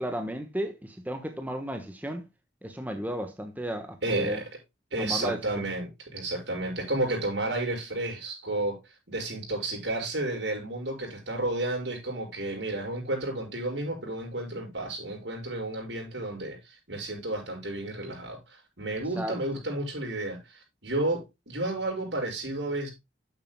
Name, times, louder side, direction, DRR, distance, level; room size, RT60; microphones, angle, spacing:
voice 1, 0.0-2.2 2.6-4.4 5.0-5.7 19.1-19.4, equal, 10° right, 1.2 m, -34 dB
voice 2, 4.0-4.5 4.9-8.8 9.1-22.9, right 2 dB, 75° right, 6.5 m, -32 dB
11.5 x 9.2 x 2.3 m
head